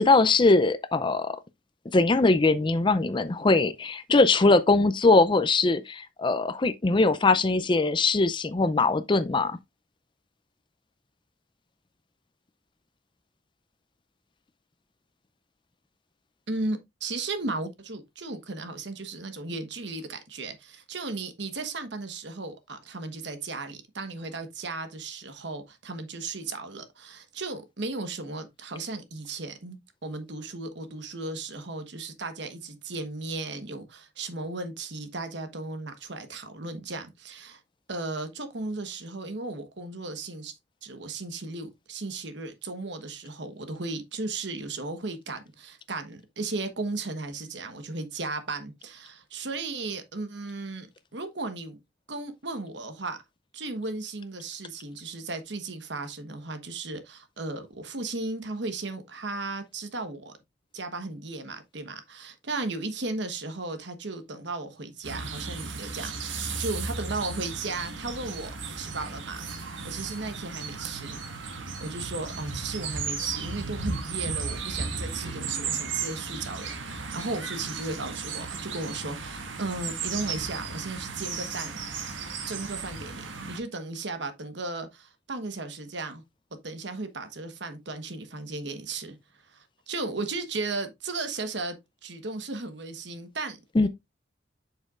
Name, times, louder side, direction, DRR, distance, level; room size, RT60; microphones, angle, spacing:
voice 1, 0.0-1.4 1.9-9.6 93.8-93.9, left 3 dB, 25° left, 0.4 m, -21 dB
voice 2, 16.5-37.6 37.9-50.9 51.1-51.8 52.1-53.2 53.5-60.4 60.7-69.5 69.8-81.8 82.5-86.2 86.6-89.2 89.5-93.9, right 3 dB, 60° right, 1.2 m, -35 dB
sound 1, 65.0-83.6, right 5 dB, 80° right, 1.5 m, -35 dB
7.8 x 6.5 x 2.4 m
head